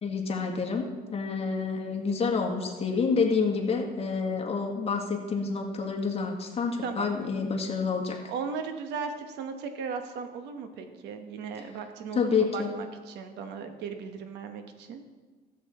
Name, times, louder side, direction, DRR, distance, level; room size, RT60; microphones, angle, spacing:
voice 1, 0.0-0.8 1.1-8.2 12.1-12.7, left 5 dB, 35° left, 0 dB, 1.8 m, -28 dB
voice 2, 8.3-15.0, right 5 dB, 85° right, 7 dB, 1.2 m, -37 dB
13.5 x 7.7 x 4.4 m, 1.4 s
cardioid pair, 110°, 17 cm